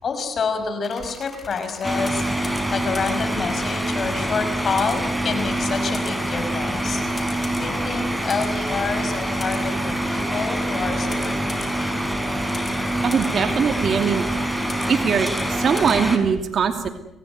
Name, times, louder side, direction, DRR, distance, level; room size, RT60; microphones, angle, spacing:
voice 1, 0.0-7.0 7.5-12.0, left 5 dB, 50° left, 8 dB, 6.0 m, -28 dB
sound 1, 0.8-16.1, left 3 dB, 30° left, 5.8 m, -41 dB
sound 2, 1.8-16.2, right 1 dB, ahead, 5.0 m, -25 dB
voice 2, 13.0-14.3 14.9-16.9, right 6 dB, 55° right, 6 dB, 2.7 m, -21 dB
27.0 x 17.5 x 9.5 m, 0.88 s
cardioid pair, 90°, 0 cm